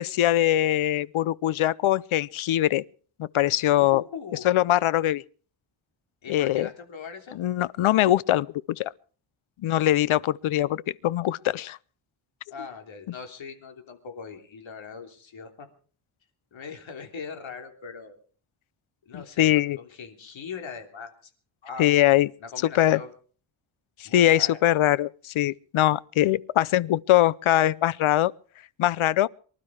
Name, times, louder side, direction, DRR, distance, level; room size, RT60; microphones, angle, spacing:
voice 1, 0.0-2.8 3.2-4.0 4.4-5.2 6.3-6.7 7.3-8.9 9.6-11.8 19.1-19.8 21.8-22.3 22.7-23.0 24.0-28.3 28.8-29.3, left 13 dB, 90° left, 0.7 m, -22 dB
voice 2, 3.8-4.5 6.2-7.4 12.5-15.7 16.5-18.2 19.0-21.3 21.6-21.9 22.4-23.1 24.0-24.6, left 5 dB, 70° left, 3.3 m, -40 dB
24.5 x 12.0 x 4.8 m
wide cardioid pair, 130°, 47 cm